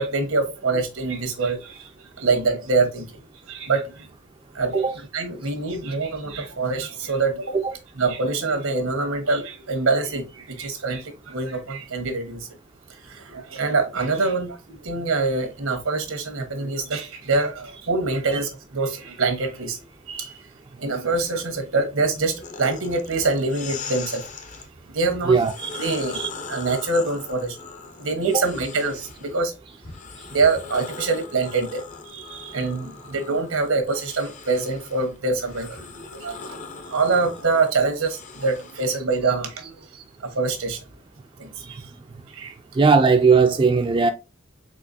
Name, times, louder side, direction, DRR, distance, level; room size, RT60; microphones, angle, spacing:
voice 1, 0.0-1.8 2.2-3.0 3.5-3.9 4.5-4.8 5.1-7.5 7.9-12.4 13.3-19.8 20.1-20.3 20.8-24.2 24.9-25.3 25.8-26.2 26.5-27.6 28.0-29.5 30.3-31.8 32.1-36.6 36.9-39.7 40.3-40.8 41.4-41.5 42.3-42.5, right 3 dB, 90° right, 1.3 m, -25 dB
sound 1, 22.4-24.7 25.3-29.4 29.8-39.0, left 5 dB, 35° left, 0.5 m, -40 dB
voice 2, 25.3-25.7 26.1-26.3 28.2-28.4 41.6-41.8 42.8-44.1, right 5 dB, 25° right, 0.3 m, -18 dB
4.4 x 4.0 x 2.6 m
head